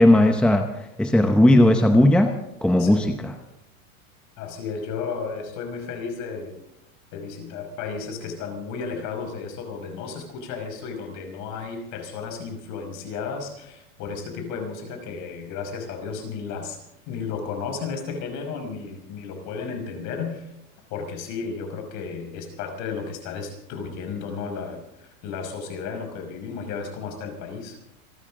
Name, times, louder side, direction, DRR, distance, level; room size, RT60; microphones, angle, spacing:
voice 1, 0.0-2.3 2.6-3.3, left 1 dB, ahead, 6 dB, 0.8 m, -17 dB
voice 2, 2.8-3.1 4.4-6.6 7.1-16.8 17.1-20.5 20.9-27.8, left 5 dB, 45° left, 4 dB, 5.7 m, -33 dB
27.5 x 13.0 x 3.7 m, 0.83 s
hypercardioid pair, 130°, 42 cm